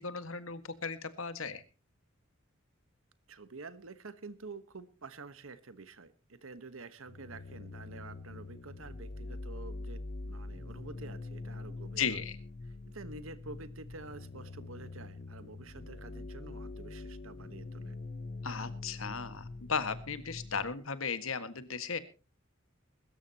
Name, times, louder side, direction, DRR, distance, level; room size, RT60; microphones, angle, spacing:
voice 1, 0.0-1.6 12.0-12.4 18.4-22.0, left 5 dB, 85° left, 12 dB, 1.7 m, -36 dB
voice 2, 3.3-12.2 12.9-18.0, right 3 dB, 80° right, 13 dB, 1.3 m, -48 dB
sound 1, 7.1-20.7, left 2 dB, 45° left, 0.8 m, -44 dB
22.0 x 13.5 x 2.9 m, 0.33 s
head